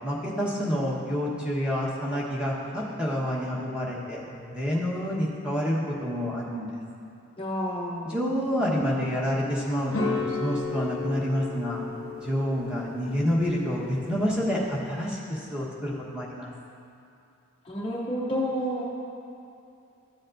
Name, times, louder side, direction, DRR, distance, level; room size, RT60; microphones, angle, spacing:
voice 1, 0.0-6.7 8.0-11.8 12.2-16.5, equal, 5° right, -6 dB, 1.1 m, -28 dB
voice 2, 7.4-8.2 17.6-18.8, equal, 25° left, -4 dB, 0.6 m, -30 dB
sound 1, 9.9-15.1, left 4 dB, 65° left, 0.7 m, -34 dB
13.5 x 7.4 x 2.6 m, 2.6 s
head